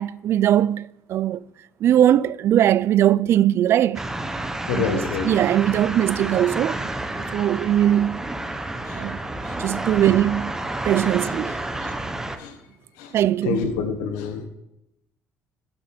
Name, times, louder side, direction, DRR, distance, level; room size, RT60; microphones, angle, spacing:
voice 1, 0.0-1.4 1.8-4.1 4.7-6.8 7.2-8.2 8.9-9.2 9.6-10.5 10.8-11.6 13.1-13.7, right 11 dB, 55° right, 0.3 m, -20 dB
sound 1, 4.0-12.4, right 2 dB, 10° right, 0.9 m, -30 dB
voice 2, 4.7-5.3 8.9-9.0 9.4-9.5 11.8-11.9 12.4-12.6 13.0-13.1 13.4-14.5, left 6 dB, 90° left, 1.3 m, -27 dB
13.0 x 7.3 x 4.4 m
cardioid pair, 105°, 5 cm